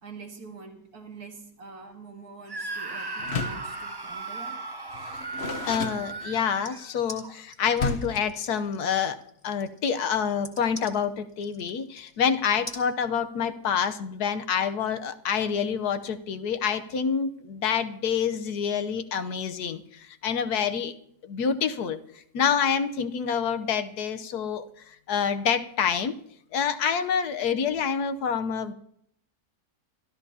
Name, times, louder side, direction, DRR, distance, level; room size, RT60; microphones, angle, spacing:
voice 1, 0.0-4.6, right 4 dB, 80° right, 2 dB, 2.4 m, -45 dB
Screaming, 2.5-7.3, right 3 dB, 25° right, 0.6 m, -37 dB
Door, 3.2-3.7 4.9-6.6 7.8-8.3, left 4 dB, 45° left, 1.3 m, -32 dB
voice 2, 5.6-9.2 9.4-21.0 21.2-26.2 26.5-28.7, left 7 dB, 85° left, 9 dB, 1.4 m, -27 dB
sound 1, 6.6-12.2 12.7-12.9, left 1 dB, 15° left, 1.9 m, -44 dB
26.5 x 13.0 x 2.8 m, 0.70 s
omnidirectional pair, 1.6 m